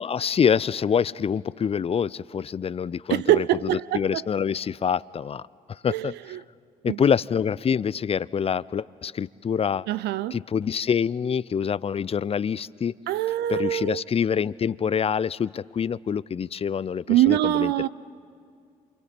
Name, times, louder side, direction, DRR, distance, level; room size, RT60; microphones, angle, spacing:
voice 1, 0.0-5.4 5.7-6.4 6.8-9.9 10.3-12.9 13.5-17.9, left 7 dB, 35° left, 0.4 m, -26 dB
voice 2, 3.1-4.2 5.9-6.4 6.9-7.0 9.9-10.4 13.1-14.0 17.1-17.9, right 14 dB, 70° right, 0.4 m, -24 dB
28.0 x 26.5 x 4.4 m
hypercardioid pair, 45°, 18 cm